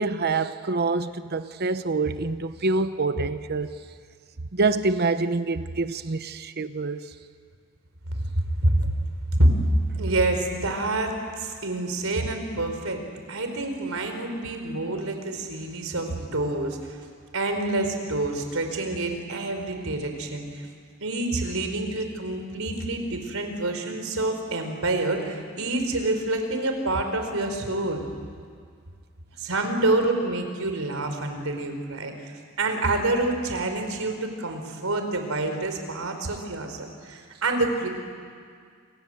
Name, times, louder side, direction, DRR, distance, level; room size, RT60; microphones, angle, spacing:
voice 1, 0.0-3.7 4.5-7.0 9.9-10.1, right 3 dB, 50° right, 11 dB, 0.9 m, -26 dB
voice 2, 8.3-8.9 9.4-9.7 10.0-13.0 13.3-17.0 17.3-20.6 21.0-28.0 29.4-37.9, right 2 dB, 80° right, 5 dB, 4.5 m, -27 dB
29.0 x 26.5 x 7.8 m, 2.1 s
head